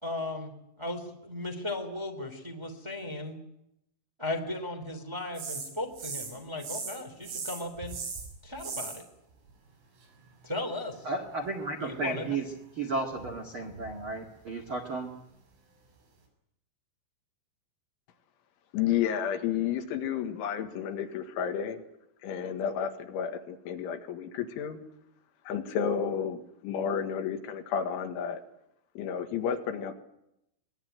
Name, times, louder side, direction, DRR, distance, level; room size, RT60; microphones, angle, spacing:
voice 1, 0.0-0.5 0.8-3.4 4.2-8.0 8.4-9.0 10.4-11.1 11.8-12.4, left 2 dB, 10° right, 4 dB, 1.9 m, -36 dB
sound 1, 5.3-6.3 6.6-7.0 7.2-9.0 13.1-14.1 14.6-14.7, right 5 dB, 85° right, 8.7 m, -38 dB
voice 2, 11.0-12.5 12.8-15.1, right 3 dB, 50° right, 3 dB, 1.6 m, -33 dB
voice 3, 18.7-21.8 22.2-24.8 25.5-28.4 29.0-29.9, left 8 dB, 80° left, 6 dB, 4.1 m, -31 dB
24.0 x 20.0 x 9.3 m, 0.84 s
omnidirectional pair, 5.5 m